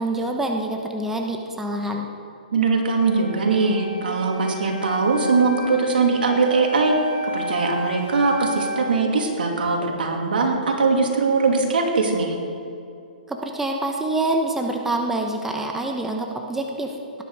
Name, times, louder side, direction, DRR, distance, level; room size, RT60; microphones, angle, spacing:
voice 1, 0.0-2.1 13.3-17.2, right 2 dB, 5° right, 2 dB, 1.1 m, -26 dB
voice 2, 2.5-6.9 7.2-12.3, right 4 dB, 75° right, 1 dB, 2.8 m, -21 dB
Wind instrument woodwind instrument, 2.9-8.9, left 1 dB, 90° left, 3.3 m, -32 dB
18.5 x 10.5 x 5.0 m, 2.6 s
hypercardioid pair, 135°, 5 cm